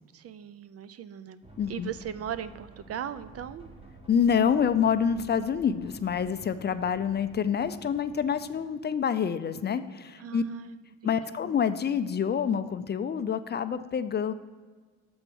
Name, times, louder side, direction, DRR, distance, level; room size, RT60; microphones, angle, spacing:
voice 1, 0.1-1.4 1.7-3.7 10.2-11.2, right 9 dB, 55° right, 14 dB, 0.5 m, -38 dB
sound 1, 1.4-8.6, right 2 dB, 20° right, 1.4 m, -51 dB
voice 2, 1.6-1.9 4.1-10.4 11.0-14.3, left 7 dB, 35° left, 12 dB, 0.4 m, -27 dB
7.0 x 4.6 x 6.8 m, 1.5 s
cardioid pair, 90°, 30 cm